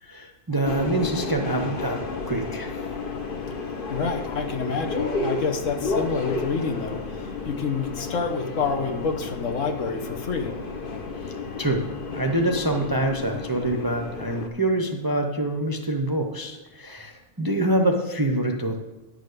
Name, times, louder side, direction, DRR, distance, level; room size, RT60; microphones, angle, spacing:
voice 1, 0.0-2.0 2.3-2.8 11.2-18.8, right 1 dB, 20° right, 3 dB, 0.6 m, -26 dB
Subway metro underground, 0.7-14.5, left 3 dB, 40° left, 1.2 m, -32 dB
voice 2, 3.9-10.6, left 4 dB, 65° left, 4 dB, 1.4 m, -28 dB
10.5 x 6.7 x 6.7 m, 1.2 s
omnidirectional pair, 1.5 m